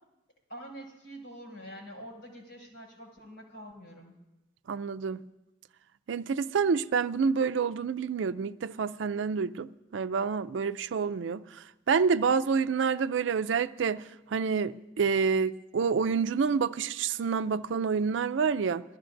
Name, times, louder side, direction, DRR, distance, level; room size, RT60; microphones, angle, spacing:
voice 1, 0.5-4.1, equal, 75° left, 6.0 m, -46 dB
voice 2, 4.7-5.2 6.1-11.4 11.9-14.0 14.3-18.8, right 5 dB, 75° right, 0.4 m, -28 dB
22.0 x 14.0 x 2.6 m
head